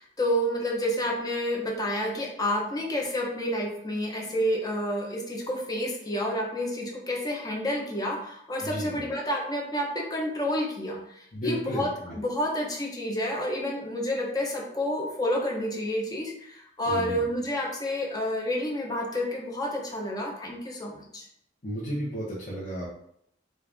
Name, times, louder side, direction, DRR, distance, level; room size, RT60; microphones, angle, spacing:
voice 1, 0.0-21.3, equal, 20° left, -1 dB, 0.7 m, -29 dB
voice 2, 8.6-9.0 11.3-12.1 16.9-17.2 21.6-22.9, equal, 40° left, -10 dB, 1.1 m, -33 dB
4.3 x 2.6 x 3.4 m, 0.71 s
head